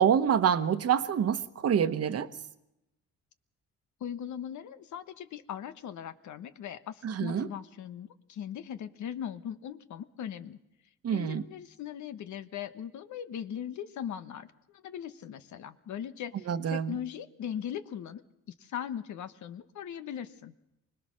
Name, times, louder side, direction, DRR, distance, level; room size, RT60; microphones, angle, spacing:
voice 1, 0.0-2.3 7.0-7.5 11.0-11.4 16.5-16.9, right 8 dB, 55° right, 11 dB, 1.1 m, -26 dB
voice 2, 4.0-10.6 11.1-18.2 18.6-20.5, left 9 dB, 70° left, 11 dB, 1.2 m, -39 dB
24.5 x 19.5 x 6.4 m, 0.87 s
cardioid pair, 90°, 30 cm